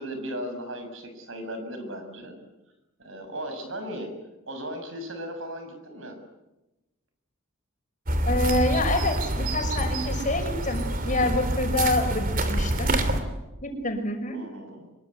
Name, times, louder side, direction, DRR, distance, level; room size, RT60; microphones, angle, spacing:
voice 1, 0.0-2.4 3.0-4.1 4.5-6.2 14.3-14.9, equal, 65° right, 7 dB, 6.8 m, -36 dB
sound 1, 8.1-13.2, right 1 dB, 40° right, 3.1 m, -26 dB
voice 2, 8.2-13.0 13.6-14.4, left 2 dB, 40° left, 5 dB, 5.7 m, -27 dB
25.5 x 22.5 x 9.7 m, 1.0 s
head